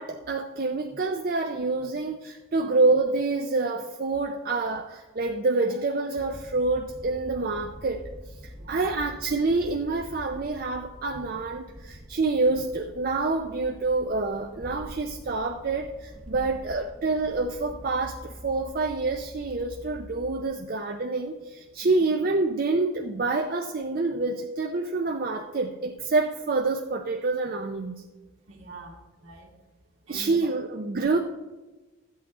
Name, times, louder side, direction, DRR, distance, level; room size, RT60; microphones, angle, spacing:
voice 1, 0.0-8.0 8.4-28.0 30.1-31.2, right 3 dB, 40° right, 3 dB, 0.5 m, -27 dB
sound 1, 6.2-20.4, equal, ahead, 0.7 m, -45 dB
voice 2, 8.6-8.9 16.3-16.5 21.8-22.0 28.5-29.5 30.1-30.5, right 2 dB, 65° right, -2 dB, 2.1 m, -45 dB
12.5 x 8.3 x 3.7 m, 1.2 s
head